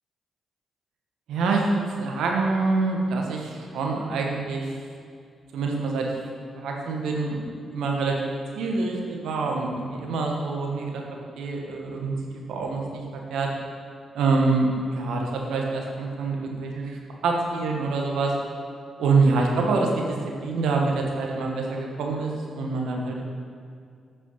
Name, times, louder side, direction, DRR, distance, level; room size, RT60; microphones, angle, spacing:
voice 1, 1.3-1.7 2.0-4.7 5.5-6.1 6.5-8.2 8.5-11.0 11.4-13.0 13.3-13.5 14.1-18.3 19.0-23.2, right 3 dB, 75° right, 0 dB, 1.2 m, -26 dB
8.3 x 6.2 x 5.5 m, 2.3 s
hypercardioid pair, 45°, 0 cm